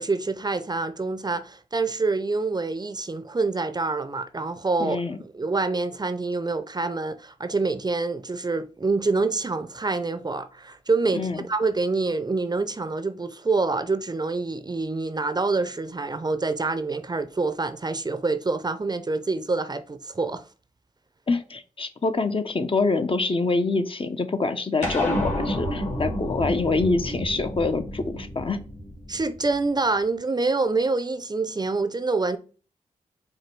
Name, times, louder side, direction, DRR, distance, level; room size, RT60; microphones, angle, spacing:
voice 1, 0.0-20.4 29.1-32.4, right 3 dB, 30° right, 0.5 m, -26 dB
voice 2, 4.8-5.2 11.1-11.4 21.3-28.6, left 3 dB, 40° left, 0.7 m, -25 dB
sound 1, 24.8-29.6, left 1 dB, 60° left, 2.1 m, -29 dB
4.7 x 2.2 x 4.4 m
supercardioid pair, 45°, 14 cm